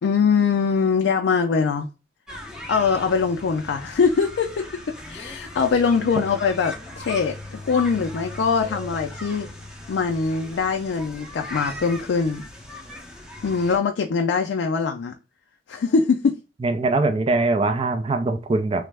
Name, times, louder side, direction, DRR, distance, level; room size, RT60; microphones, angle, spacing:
voice 1, 0.0-1.9 2.7-4.5 5.1-9.5 9.9-12.4 13.4-15.1 15.7-16.4, left 5 dB, 80° left, 0.4 m, -22 dB
sound 1, 2.3-13.8, left 1 dB, 5° right, 0.7 m, -38 dB
voice 2, 16.6-18.9, right 3 dB, 30° right, 0.3 m, -22 dB
3.2 x 2.0 x 3.2 m
head